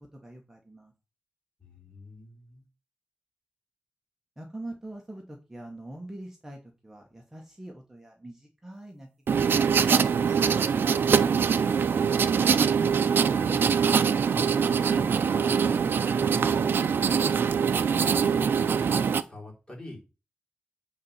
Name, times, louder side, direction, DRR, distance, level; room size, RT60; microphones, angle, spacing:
voice 1, 0.2-0.9 4.4-11.7, right 1 dB, 10° right, 1 dB, 1.3 m, -44 dB
voice 2, 1.6-2.6 12.2-14.0 14.3-17.3 17.8-20.0, left 1 dB, 20° left, -2 dB, 3.9 m, -44 dB
sound 1, 9.3-19.2, right 6 dB, 70° right, 0.6 m, -23 dB
8.8 x 4.1 x 7.2 m, 0.31 s
wide cardioid pair, 140°, 4 cm